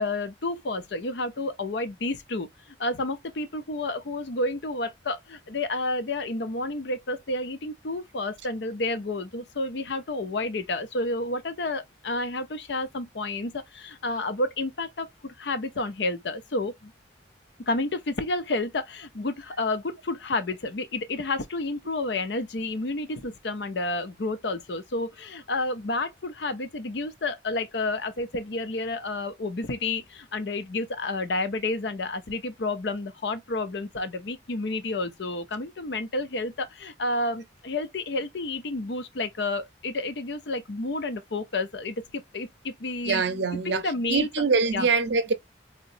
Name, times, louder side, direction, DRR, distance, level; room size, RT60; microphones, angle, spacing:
voice 1, 0.0-16.9 17.6-43.2 43.5-44.3 44.7-44.9, left 2 dB, 75° left, 0.6 m, -30 dB
voice 2, 43.0-43.8 44.1-45.3, right 4 dB, 75° right, 0.6 m, -24 dB
3.8 x 2.1 x 2.5 m
head